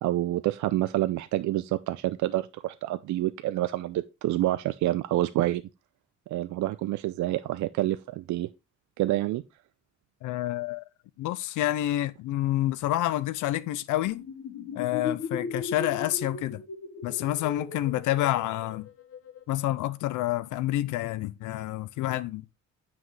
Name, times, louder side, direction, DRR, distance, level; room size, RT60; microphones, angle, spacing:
voice 1, 0.0-5.6 6.3-8.5 9.0-9.4, right 15 dB, 75° right, 0.4 m, -28 dB
voice 2, 10.2-10.8 11.2-14.2 14.7-16.6 17.0-18.9 19.5-22.4, left 14 dB, 80° left, 0.5 m, -28 dB
sound 1, 14.1-19.4, left 5 dB, 50° left, 1.1 m, -37 dB
7.3 x 5.9 x 3.1 m
cardioid pair, 90°, 30 cm